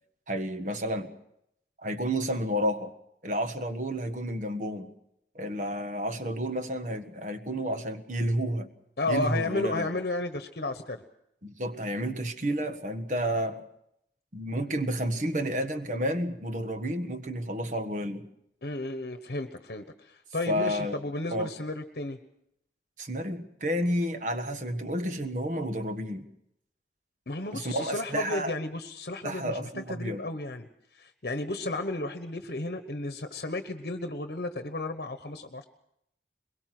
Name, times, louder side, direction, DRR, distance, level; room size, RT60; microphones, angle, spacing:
voice 1, 0.3-1.1 1.8-2.9 3.2-4.9 5.3-8.7 9.1-9.9 11.4-13.6 14.3-18.3 20.5-21.0 21.3-21.5 23.0-26.3 27.5-28.5 29.2-30.2, equal, 45° right, 7 dB, 1.6 m, -31 dB
voice 2, 9.0-11.0 18.6-22.2 27.3-30.7 31.0-35.6, left 2 dB, 60° left, 8 dB, 1.1 m, -33 dB
22.5 x 22.0 x 6.1 m, 0.77 s
head